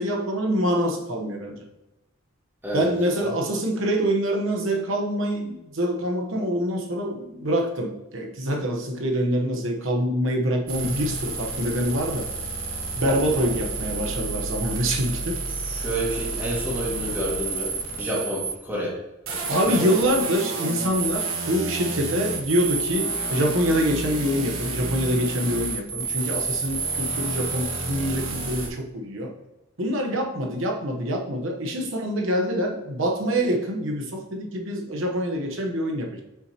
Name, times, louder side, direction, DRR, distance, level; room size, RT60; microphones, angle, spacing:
voice 1, 0.0-1.6 2.7-12.3 13.0-15.4 19.5-29.3 29.8-36.2, equal, 65° right, 1 dB, 1.0 m, -25 dB
sound 1, 10.7-18.5 19.3-28.7, right 4 dB, 80° right, 1.4 m, -30 dB
voice 2, 15.6-18.9 19.6-19.9, equal, 10° right, -5 dB, 2.0 m, -29 dB
7.3 x 6.0 x 2.9 m, 0.96 s
head